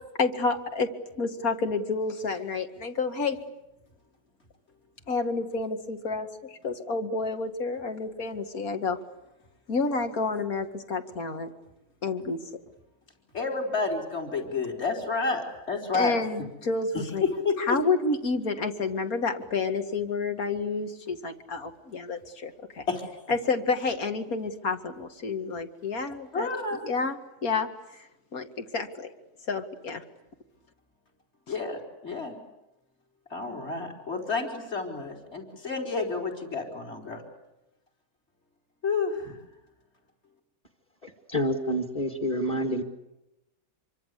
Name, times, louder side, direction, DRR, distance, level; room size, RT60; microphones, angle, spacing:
voice 1, 0.2-3.4 5.1-9.0 9.7-11.5 12.0-12.4 15.9-17.2 17.6-22.9 23.3-28.1 28.3-29.1 29.5-30.0, left 4 dB, 70° left, 7 dB, 2.5 m, -29 dB
voice 2, 13.3-16.1 17.2-17.8 22.9-23.0 26.3-26.8 31.5-32.4 33.3-37.2 38.8-39.3, left 4 dB, 45° left, 2 dB, 4.5 m, -30 dB
voice 3, 41.0-42.8, equal, 25° left, 5 dB, 2.1 m, -28 dB
27.0 x 24.0 x 8.3 m, 0.93 s
omnidirectional pair, 1.6 m